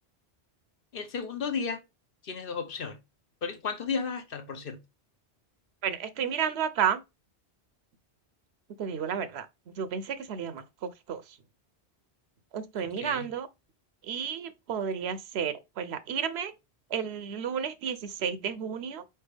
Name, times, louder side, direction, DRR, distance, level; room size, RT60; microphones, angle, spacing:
voice 1, 0.9-1.8 2.2-3.0 3.4-4.8 12.8-13.3, left 5 dB, 60° left, 1.0 m, -34 dB
voice 2, 5.8-7.0 8.8-9.5 9.8-10.6 11.1-11.2 12.5-13.5 14.1-16.5 16.9-19.0, right 8 dB, 75° right, 0.9 m, -31 dB
4.4 x 3.3 x 3.3 m
omnidirectional pair, 1.1 m